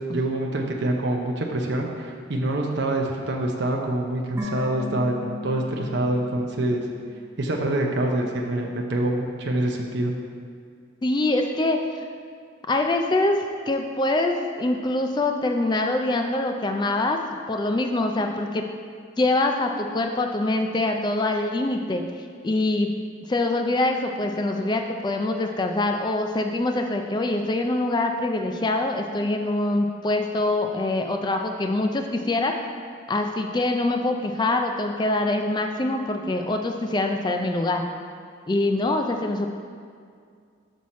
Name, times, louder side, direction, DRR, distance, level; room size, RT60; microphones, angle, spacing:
voice 1, 0.1-6.8 7.4-10.1, right 1 dB, 60° right, 0 dB, 0.6 m, -26 dB
sound 1, 4.4-7.7 7.9-8.0, left 3 dB, 15° right, 0.8 m, -36 dB
voice 2, 11.0-12.1 12.7-13.4 13.7-17.2 17.5-18.6 19.2-22.0 22.4-22.9 23.3-32.5 33.1-37.9 38.5-39.5, left 2 dB, 20° left, 4 dB, 0.3 m, -24 dB
6.2 x 5.7 x 4.2 m, 2.2 s
head